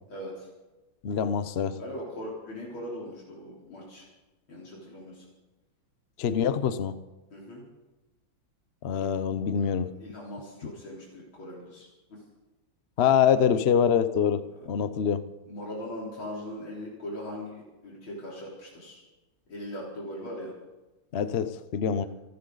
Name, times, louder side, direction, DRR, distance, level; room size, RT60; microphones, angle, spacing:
voice 1, 0.1-0.5 1.8-4.0 4.5-5.3 7.3-7.6 9.0-9.1 9.5-12.2 14.5-14.7 15.0-15.1 15.5-19.0 19.5-20.5, left 1 dB, 85° left, -4 dB, 4.7 m, -40 dB
voice 2, 1.0-1.8 6.2-7.0 8.8-9.9 13.0-14.4 14.7-15.2 21.1-22.1, left 8 dB, 60° left, 12 dB, 0.6 m, -25 dB
28.0 x 13.0 x 4.0 m, 1.1 s
omnidirectional pair, 2.2 m